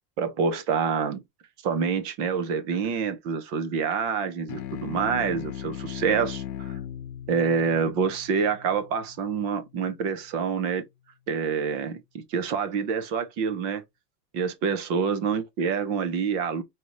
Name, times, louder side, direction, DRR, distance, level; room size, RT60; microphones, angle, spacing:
voice 1, 0.2-1.2 1.6-6.8 7.3-10.9 11.3-13.8 14.3-16.6, right 6 dB, 30° right, 0.5 m, -27 dB
sound 1, 4.5-9.3, left 10 dB, 70° left, 0.9 m, -37 dB
5.0 x 2.8 x 2.9 m
supercardioid pair, 175°, 48 cm